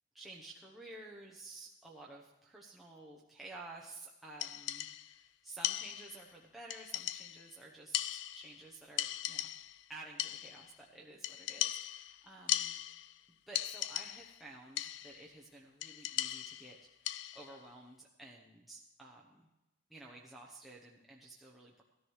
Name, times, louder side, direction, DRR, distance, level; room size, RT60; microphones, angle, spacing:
voice 1, 0.1-9.5 9.9-12.8 13.5-17.0 17.3-19.5 19.9-21.8, right 2 dB, ahead, -5 dB, 0.9 m, -52 dB
sound 1, 4.4-5.2 5.6-6.3 6.7-7.5 7.9-8.7 9.0-9.8 10.2-10.7 11.2-13.2 13.5-14.4 14.8-15.3 15.8-17.6, left 13 dB, 60° left, 0.3 m, -38 dB
17.5 x 13.0 x 3.2 m, 0.96 s
head